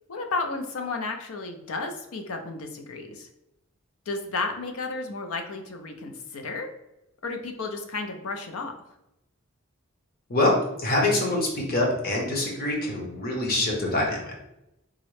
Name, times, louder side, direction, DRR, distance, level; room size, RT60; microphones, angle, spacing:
voice 1, 0.1-3.3 4.1-6.7 7.2-8.7, left 3 dB, 90° left, 5 dB, 0.5 m, -32 dB
voice 2, 10.8-14.3, left 2 dB, 45° left, -1 dB, 0.8 m, -25 dB
3.6 x 2.0 x 3.1 m, 0.89 s
head